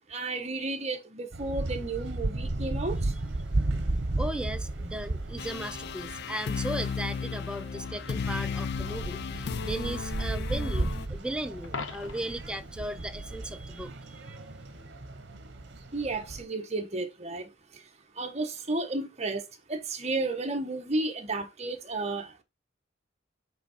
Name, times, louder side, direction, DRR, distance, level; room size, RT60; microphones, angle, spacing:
voice 1, 0.1-3.1 15.9-17.5 18.2-19.4 19.7-22.4, right 2 dB, 35° right, 1.3 m, -32 dB
sound 1, 1.3-16.4, right 2 dB, 60° right, 1.2 m, -34 dB
voice 2, 4.2-14.4, right 1 dB, 5° right, 0.6 m, -36 dB
sound 2, 5.4-11.1, left 6 dB, 55° left, 0.4 m, -35 dB
Coin (dropping), 11.6-12.5 18.6-18.7, left 4 dB, 75° left, 1.1 m, -39 dB
8.6 x 3.6 x 4.4 m
head